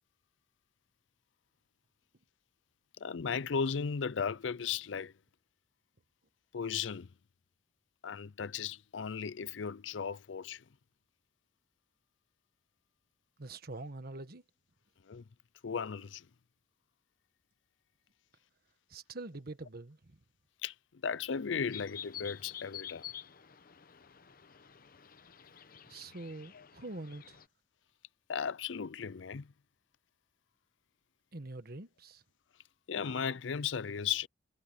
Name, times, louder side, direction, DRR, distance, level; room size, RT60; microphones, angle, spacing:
voice 1, 3.0-5.1 6.5-7.1 8.0-10.6 15.1-15.2 15.6-16.3 20.6-23.1 26.5-26.6 28.3-29.5 32.9-34.3, left 6 dB, 90° left, 0.5 m, -36 dB
voice 2, 13.4-14.4 18.9-20.2 25.9-27.4 31.3-32.2, right 2 dB, 55° right, 1.4 m, -45 dB
sound 1, 21.7-27.5, left 10 dB, 50° left, 0.9 m, -49 dB
head